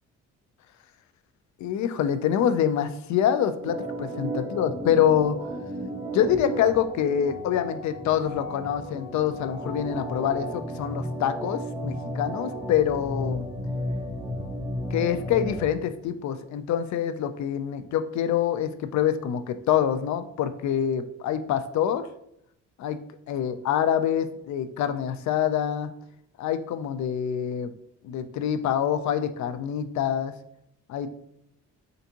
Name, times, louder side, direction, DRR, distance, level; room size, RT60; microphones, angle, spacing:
voice 1, 1.6-5.4 6.1-13.5 14.9-22.1 22.8-23.0 23.3-25.9 26.4-27.7 28.0-30.3 30.9-31.1, left 9 dB, 70° left, 10 dB, 0.5 m, -26 dB
Organ, 3.6-15.8, equal, 10° right, 0.5 m, -33 dB
3.9 x 3.4 x 2.8 m, 0.76 s
cardioid pair, 90°, 30 cm